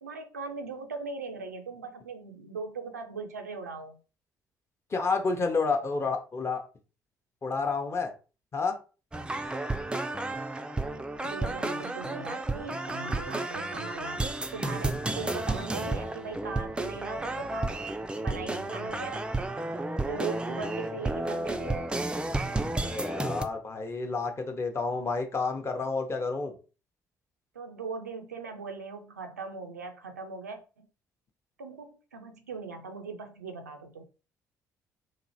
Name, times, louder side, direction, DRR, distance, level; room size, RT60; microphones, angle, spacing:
voice 1, 0.0-4.0 11.2-17.8 18.2-19.3 20.1-21.9 27.5-30.9 31.6-34.0, right 4 dB, 85° right, 0.4 m, -40 dB
voice 2, 4.9-6.6 7.4-8.1 8.5-8.8 22.8-26.6, left 4 dB, 30° left, 0.7 m, -30 dB
sound 1, 9.1-23.4, right 2 dB, 10° right, 0.3 m, -32 dB
2.9 x 2.5 x 2.7 m
figure-of-eight pair, 45°, 9 cm